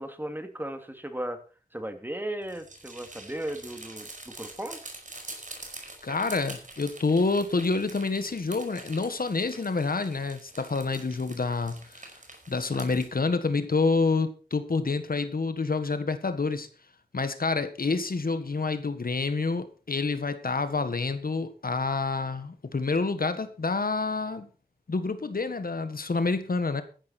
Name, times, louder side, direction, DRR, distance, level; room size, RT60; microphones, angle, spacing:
voice 1, 0.0-1.4 1.7-4.8, right 1 dB, 10° right, 7 dB, 2.6 m, -36 dB
sound 1, 2.4-13.1, right 2 dB, 50° right, 5.1 m, -45 dB
voice 2, 6.0-12.1 12.5-16.7 17.1-24.5 24.9-26.8, left 3 dB, 65° left, 10 dB, 1.6 m, -28 dB
14.5 x 11.0 x 4.3 m, 0.36 s
wide cardioid pair, 55°, 16 cm